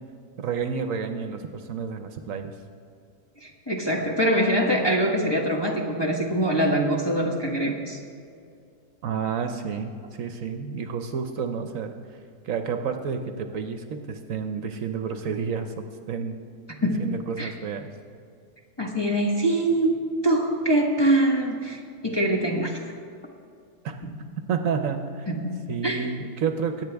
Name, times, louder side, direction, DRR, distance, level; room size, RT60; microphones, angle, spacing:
voice 1, 0.4-2.5 9.0-11.9 12.4-15.7 16.1-16.4 16.8-17.9 23.8-24.0 24.4-25.3 25.7-26.8, right 6 dB, 65° right, 7 dB, 1.1 m, -30 dB
voice 2, 3.4-8.0 16.8-17.1 17.4-17.5 18.8-19.9 20.2-22.8 24.0-24.1 25.3-25.6 25.8-26.1, right 1 dB, 20° left, -2 dB, 1.0 m, -24 dB
22.0 x 9.0 x 3.4 m, 2.3 s
omnidirectional pair, 1.6 m